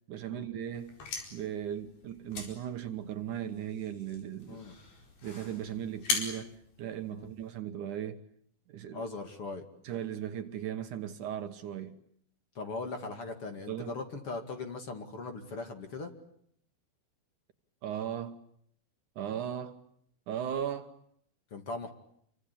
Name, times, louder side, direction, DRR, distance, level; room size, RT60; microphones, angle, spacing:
voice 1, 0.1-1.0 1.3-4.6 5.2-8.2 8.7-9.0 9.8-12.0 13.7-13.9 17.8-18.4 19.2-19.8 20.3-21.0, right 9 dB, 65° right, 2.5 m, -37 dB
sound 1, 0.8-7.6, left 4 dB, 80° left, 6.5 m, -40 dB
voice 2, 8.9-9.6 12.5-16.1 21.5-21.9, left 3 dB, 40° left, 2.9 m, -39 dB
28.5 x 24.5 x 8.5 m
omnidirectional pair, 4.2 m